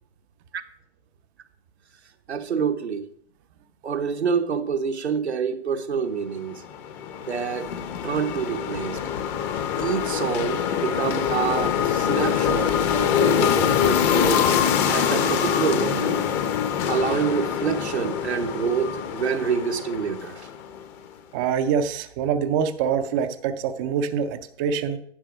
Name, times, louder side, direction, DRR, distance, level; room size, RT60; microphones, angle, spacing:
voice 1, 2.3-3.1 3.8-6.6 7.3-7.7 8.0-9.0 9.8-14.5 14.9-16.2 16.9-20.5, right 6 dB, 90° right, 1.1 m, -27 dB
sound 1, 6.5-20.9, left 8 dB, 25° left, 0.7 m, -24 dB
sound 2, 7.6-15.7, left 6 dB, 70° left, 1.1 m, -37 dB
voice 2, 21.3-25.0, right 7 dB, 20° right, 0.4 m, -25 dB
10.0 x 5.9 x 5.1 m
hypercardioid pair, 130°, 32 cm